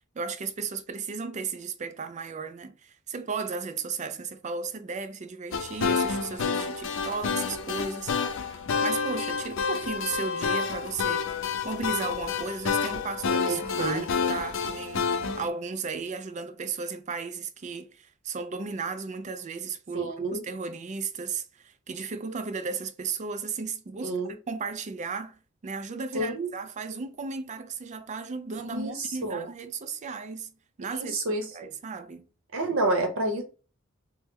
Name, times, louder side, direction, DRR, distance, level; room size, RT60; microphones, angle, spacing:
voice 1, 0.2-30.5 30.8-31.2 31.5-32.3, right 5 dB, 35° right, 0.4 m, -35 dB
sound 1, 5.5-15.5, left 5 dB, 65° left, 0.5 m, -29 dB
voice 2, 13.4-14.3 19.9-20.4 24.0-24.3 26.1-26.5 28.7-29.4 30.9-31.4 32.5-33.4, right 2 dB, 70° right, 0.9 m, -29 dB
3.0 x 2.1 x 3.5 m
head